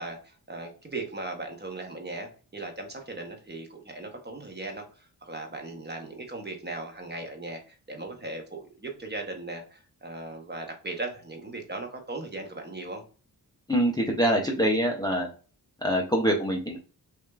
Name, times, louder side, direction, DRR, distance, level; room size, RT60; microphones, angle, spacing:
voice 1, 0.0-13.0, right 2 dB, 25° right, 3 dB, 0.7 m, -38 dB
voice 2, 13.7-15.3 15.8-16.8, equal, 10° left, 0 dB, 0.4 m, -24 dB
6.0 x 2.4 x 2.2 m, 0.38 s
wide cardioid pair, 175°, 39 cm